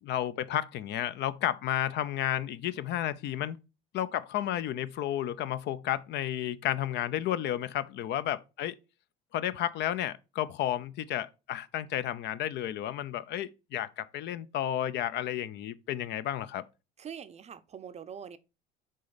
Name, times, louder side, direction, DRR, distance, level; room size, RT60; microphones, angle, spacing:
voice 1, 0.0-3.6 3.9-8.7 9.3-16.6, left 12 dB, 60° left, 0.5 m, -32 dB
voice 2, 17.0-18.4, right 7 dB, 35° right, 0.6 m, -43 dB
6.4 x 4.0 x 4.0 m
supercardioid pair, 95°, 20 cm